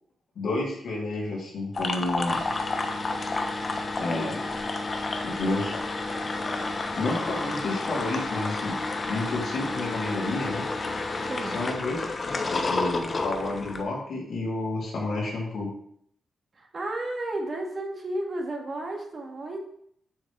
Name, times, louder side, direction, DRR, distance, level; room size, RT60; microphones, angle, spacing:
voice 1, 0.3-2.4 4.0-4.4 5.2-5.7 6.9-8.8 9.1-10.7 11.5-15.7, left 2 dB, 75° left, -3 dB, 3.0 m, -30 dB
sound 1, 1.7-13.8, left 3 dB, 45° left, 1.0 m, -30 dB
voice 2, 11.3-11.6 16.6-19.7, right 1 dB, 50° right, 0 dB, 2.2 m, -33 dB
7.2 x 6.4 x 3.5 m, 0.67 s
supercardioid pair, 55°, 0 cm